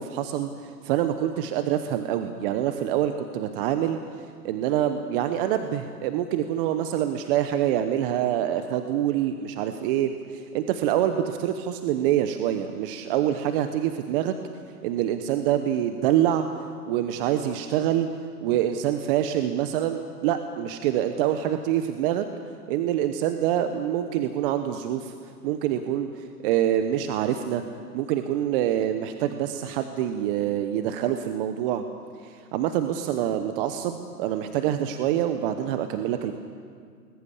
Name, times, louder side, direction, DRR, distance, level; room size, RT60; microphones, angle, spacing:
voice 1, 0.0-4.0 4.4-14.3 14.8-16.5 16.8-18.1 18.4-22.3 22.7-25.1 25.4-27.6 27.9-31.8 32.2-36.3, right 11 dB, 35° right, 8 dB, 1.0 m, -26 dB
21.0 x 20.5 x 7.2 m, 2.1 s
hypercardioid pair, 135°, 49 cm